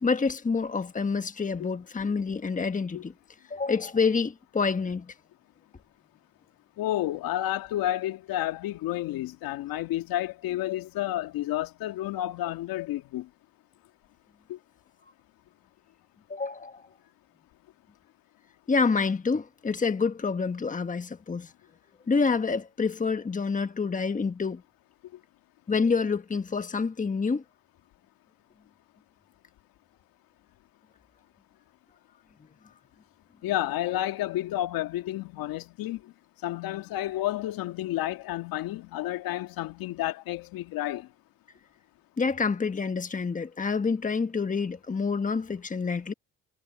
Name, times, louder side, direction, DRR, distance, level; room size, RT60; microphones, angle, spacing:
voice 1, 0.0-3.1 3.5-5.1 16.3-16.8 18.7-21.5 22.1-24.6 25.7-27.4 42.2-46.1, left 4 dB, 20° left, 1.4 m, -27 dB
voice 2, 6.8-13.3 14.5-14.6 33.4-36.1 36.4-41.1, left 14 dB, 75° left, 2.0 m, -31 dB
supercardioid pair, 75°, 35 cm